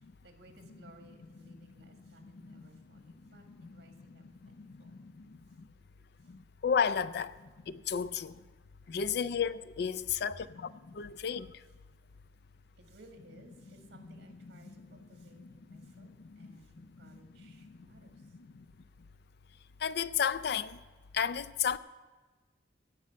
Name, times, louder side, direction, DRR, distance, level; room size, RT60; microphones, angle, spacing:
voice 1, 0.2-4.9 12.8-16.1 16.4-18.3, right 2 dB, 65° right, 1.8 m, -59 dB
voice 2, 1.4-5.7 6.3-8.4 8.9-11.6 14.0-18.7 19.8-20.8 21.1-21.8, left 7 dB, 60° left, 0.4 m, -36 dB
16.0 x 5.4 x 8.4 m
head